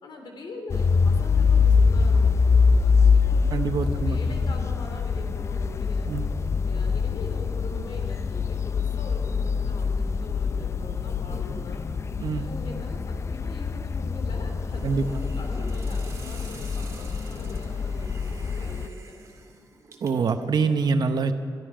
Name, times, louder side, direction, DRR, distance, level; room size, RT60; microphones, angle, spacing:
voice 1, 0.0-6.1 6.7-11.8 12.4-19.2, left 2 dB, 75° left, 2 dB, 3.1 m, -42 dB
sound 1, 0.7-18.9, left 5 dB, 35° left, 0.4 m, -24 dB
voice 2, 3.5-4.5 6.1-6.3 12.2-12.6 14.8-15.2 20.0-21.3, right 5 dB, 60° right, 8 dB, 0.9 m, -25 dB
Hiss, 14.7-20.5, right 4 dB, 40° right, 1.9 m, -48 dB
23.5 x 12.0 x 5.0 m, 2.4 s
wide cardioid pair, 160°, 8 cm